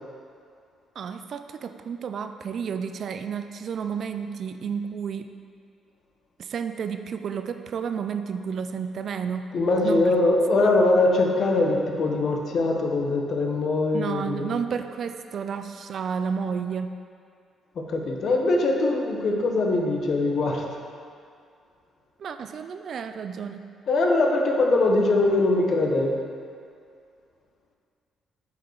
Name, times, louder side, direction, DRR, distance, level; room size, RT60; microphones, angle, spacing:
voice 1, 1.0-5.3 6.4-9.5 9.8-10.0 13.9-16.9 22.2-23.7, right 6 dB, 60° right, 8 dB, 0.4 m, -31 dB
voice 2, 9.5-14.6 17.7-20.6 23.9-26.2, left 2 dB, 60° left, 1 dB, 1.2 m, -22 dB
8.4 x 5.8 x 4.7 m, 2.3 s
cardioid pair, 90°, 0 cm